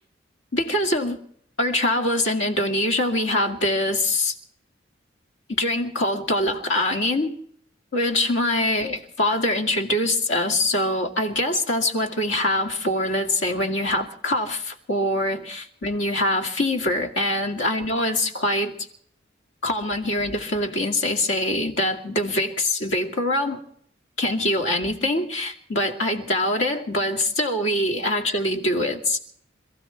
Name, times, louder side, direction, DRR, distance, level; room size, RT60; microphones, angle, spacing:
voice 1, 0.5-1.2 1.6-4.3 5.5-7.3 7.9-18.7 19.6-23.6 24.2-29.2, left 1 dB, 70° left, 2.4 m, -24 dB
27.0 x 15.0 x 3.5 m
head